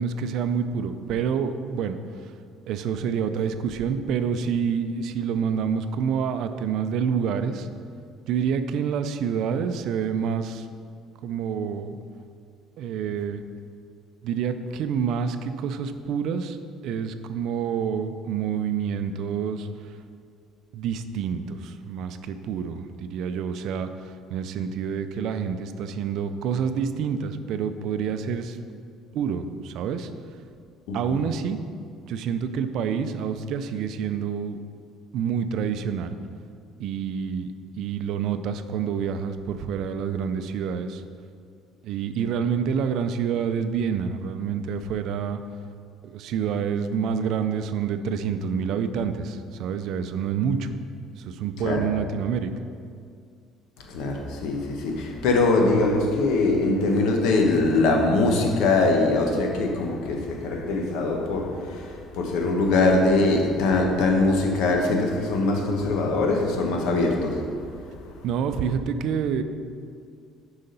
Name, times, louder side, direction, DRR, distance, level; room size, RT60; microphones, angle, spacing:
voice 1, 0.0-2.0 2.7-7.7 8.3-10.7 11.2-12.0 12.8-13.4 14.2-16.6 16.8-19.9 20.7-28.6 29.1-30.1 30.9-31.6 32.1-34.6 35.1-36.2 36.8-41.0 41.8-45.4 46.0-50.7 51.2-52.5 68.2-69.4, right 7 dB, 70° right, 9 dB, 0.4 m, -27 dB
voice 2, 30.9-31.2 51.6-51.9 53.9-68.2, left 2 dB, 75° left, 2 dB, 1.1 m, -22 dB
6.6 x 4.8 x 5.4 m, 2.3 s
cardioid pair, 105°, 0 cm